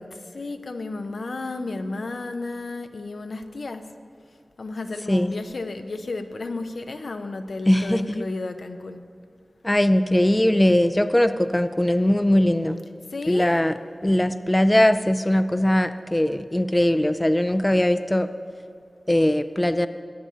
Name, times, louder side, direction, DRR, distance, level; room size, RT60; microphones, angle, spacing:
voice 1, 0.3-3.8 4.6-9.0 13.1-13.5, left 3 dB, 75° left, 7 dB, 0.5 m, -32 dB
voice 2, 7.7-8.3 9.6-12.8 13.3-13.7 14.0-18.3 19.1-19.9, left 1 dB, 20° left, 11 dB, 0.3 m, -20 dB
19.0 x 8.5 x 2.8 m, 2.3 s
wide cardioid pair, 55°, 0 cm